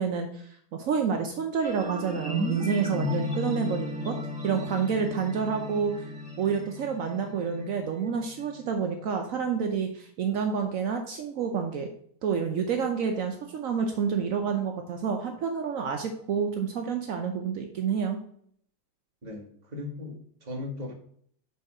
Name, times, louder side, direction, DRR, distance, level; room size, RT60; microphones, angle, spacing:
voice 1, 0.0-4.2 4.4-6.1 6.4-11.9 12.2-18.2, right 6 dB, 80° right, 4 dB, 0.7 m, -29 dB
sound 1, 1.6-8.7, left 1 dB, 5° right, 0.6 m, -34 dB
voice 2, 19.2-20.9, left 2 dB, 25° right, 1 dB, 1.2 m, -38 dB
7.1 x 4.0 x 4.8 m, 0.63 s
omnidirectional pair, 2.3 m